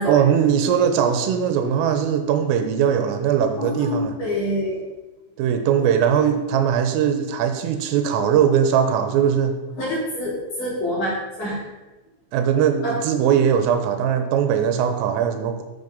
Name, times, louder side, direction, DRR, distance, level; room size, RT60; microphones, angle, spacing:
voice 1, 0.1-4.2 5.4-9.6 12.3-15.6, right 8 dB, 85° right, 8 dB, 3.5 m, -20 dB
voice 2, 3.6-4.8 9.8-11.6 12.8-12.9, left 1 dB, 40° left, -6 dB, 4.9 m, -26 dB
11.0 x 8.6 x 5.4 m, 1.1 s
omnidirectional pair, 5.9 m